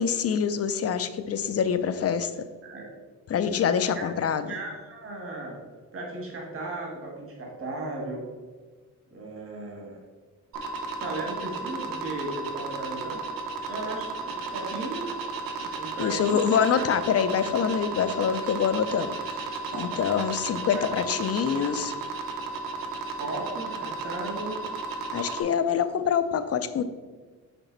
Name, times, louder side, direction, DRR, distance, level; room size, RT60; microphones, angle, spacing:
voice 1, 0.0-2.5 3.3-4.5 16.0-21.9 25.1-26.8, left 7 dB, 45° left, 11 dB, 0.5 m, -25 dB
voice 2, 3.9-5.6 5.9-8.2 9.1-10.0 11.0-13.2 13.7-15.1 15.6-16.4 16.7-16.9 19.7-19.9 20.7-21.1 23.1-24.6, right 2 dB, 40° right, -1 dB, 1.6 m, -36 dB
sound 1, 10.5-25.4, right 3 dB, 90° right, 0.8 m, -34 dB
6.1 x 4.1 x 3.9 m, 1.4 s
cardioid pair, 105°, 33 cm